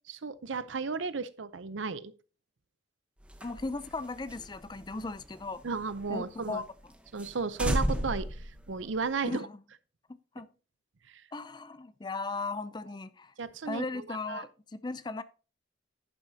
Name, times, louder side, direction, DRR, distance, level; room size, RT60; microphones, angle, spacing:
voice 1, 0.1-2.1 5.6-6.6 7.1-9.5 11.1-11.2 13.4-14.4, right 4 dB, 85° right, 0.7 m, -34 dB
sound 1, 3.2-6.1 6.4-6.5 6.8-6.9 7.2-7.3 7.6-9.3, equal, 5° right, 1.0 m, -34 dB
voice 2, 3.4-5.6 6.1-6.6 9.2-9.5 10.3-10.5 11.3-13.3 13.7-15.2, left 3 dB, 25° left, 0.4 m, -37 dB
11.5 x 9.0 x 2.8 m
head